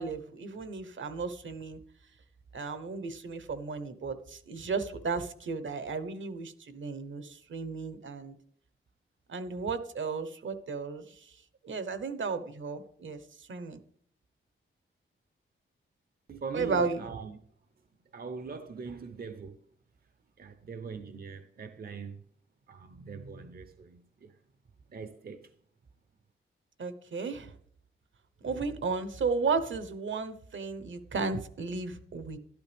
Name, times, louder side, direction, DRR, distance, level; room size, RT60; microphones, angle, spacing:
voice 1, 0.0-1.8 2.5-8.3 9.3-11.3 11.6-13.8 16.5-17.0 26.8-27.5 28.4-32.4, right 4 dB, 65° right, 1.1 m, -34 dB
voice 2, 16.3-17.4 18.1-19.6 20.4-22.1 22.7-24.3 24.9-25.5, right 5 dB, 45° right, 0.8 m, -42 dB
12.5 x 11.5 x 3.5 m
wide cardioid pair, 120°, 21 cm